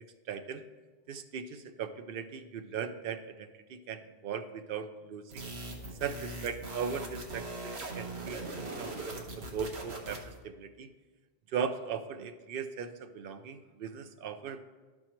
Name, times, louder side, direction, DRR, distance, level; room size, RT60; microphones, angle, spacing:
voice 1, 0.3-0.6 1.1-5.5 6.0-10.9 11.5-14.6, right 6 dB, 65° right, 10 dB, 0.8 m, -38 dB
sound 1, 5.3-10.4, right 2 dB, 80° right, 1.4 m, -41 dB
11.5 x 4.5 x 4.4 m, 1.3 s
omnidirectional pair, 1.1 m